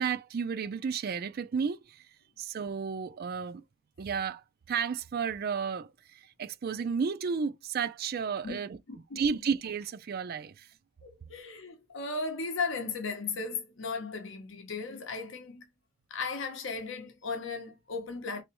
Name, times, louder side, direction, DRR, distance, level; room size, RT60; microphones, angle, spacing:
voice 1, 0.0-2.1 2.4-3.6 4.0-8.8 9.2-10.7, right 6 dB, 45° right, 0.3 m, -32 dB
voice 2, 8.9-9.3 11.0-15.7 16.1-18.4, left 4 dB, 60° left, 0.7 m, -36 dB
3.3 x 3.0 x 2.9 m
head